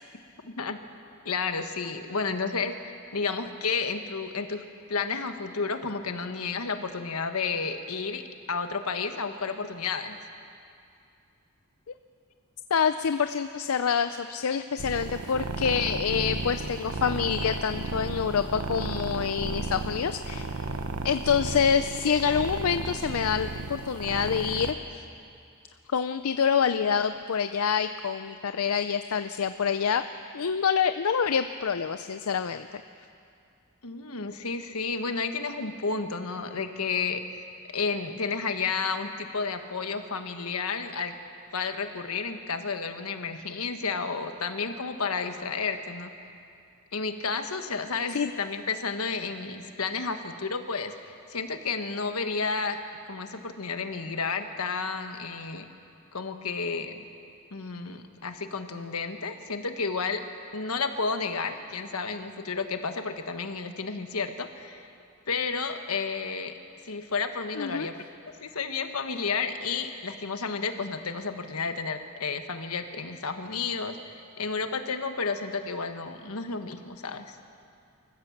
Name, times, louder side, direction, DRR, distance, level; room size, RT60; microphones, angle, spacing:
voice 1, 0.4-0.8 1.2-4.6 4.9-8.2 8.5-10.2 33.8-37.5 37.7-41.1 41.5-46.1 46.9-52.8 53.1-55.6 56.1-57.0 57.5-60.2 60.5-64.9 65.3-66.5 66.8-68.0 68.4-77.4, left 4 dB, 90° left, 7 dB, 1.3 m, -31 dB
voice 2, 12.7-20.7 21.0-25.0 25.9-30.0 30.3-32.7 48.1-48.3 67.6-67.9, left 7 dB, 75° left, 10 dB, 0.5 m, -26 dB
sound 1, 14.8-24.7, right 3 dB, 85° right, 1.0 m, -34 dB
24.5 x 15.0 x 7.3 m, 2.5 s
head